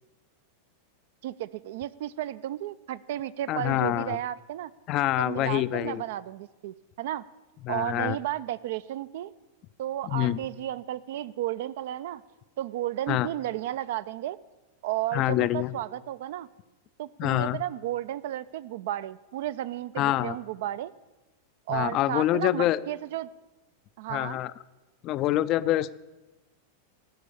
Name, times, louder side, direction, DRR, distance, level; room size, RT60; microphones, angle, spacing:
voice 1, 1.2-4.7 5.2-7.2 7.7-9.3 9.8-12.2 12.6-14.4 14.8-16.5 17.0-20.9 21.7-23.3 24.0-24.4, right 13 dB, 55° right, 17 dB, 0.3 m, -33 dB
voice 2, 3.5-4.2 4.9-6.0 7.6-8.2 10.1-10.4 13.1-13.3 15.1-15.7 17.2-17.6 20.0-20.4 21.7-22.8 24.1-24.5 25.0-25.9, left 15 dB, 40° left, 16 dB, 0.4 m, -26 dB
17.0 x 6.1 x 6.9 m, 1.1 s
figure-of-eight pair, 90°, 0 cm